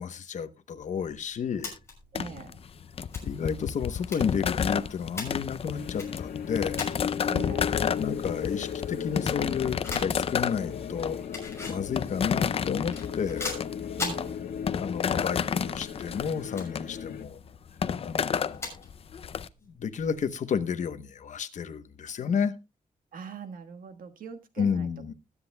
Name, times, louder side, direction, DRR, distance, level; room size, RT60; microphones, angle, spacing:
voice 1, 0.0-1.8 3.2-6.9 8.0-11.2 11.7-13.7 14.8-17.4 18.0-18.8 19.7-22.5 24.6-25.1, left 7 dB, 55° left, 0.9 m, -31 dB
sound 1, 0.8-20.4, left 3 dB, 20° left, 6.1 m, -44 dB
sound 2, 2.1-19.5, left 7 dB, 40° left, 0.5 m, -32 dB
voice 2, 2.1-2.6 7.3-7.7 14.0-14.3 23.1-24.9, right 5 dB, 75° right, 1.4 m, -41 dB
sound 3, 5.7-17.2, left 8 dB, 90° left, 1.4 m, -36 dB
20.5 x 9.8 x 2.2 m
wide cardioid pair, 170°, 14 cm